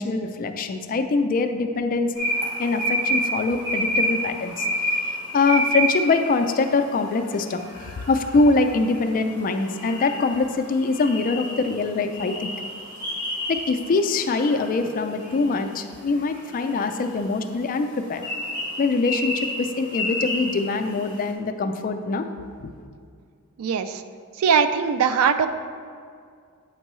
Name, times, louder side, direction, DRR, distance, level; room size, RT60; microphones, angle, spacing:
voice 1, 0.0-2.1 2.6-4.7 5.3-12.5 13.5-18.2 18.8-22.2 22.6-22.7, left 3 dB, 40° left, 7 dB, 0.3 m, -23 dB
sound 1, 2.1-21.2, equal, 20° right, 1.4 m, -30 dB
voice 2, 23.6-24.0 24.4-25.5, right 6 dB, 85° right, 10 dB, 0.4 m, -20 dB
8.0 x 4.4 x 3.1 m, 2.2 s
head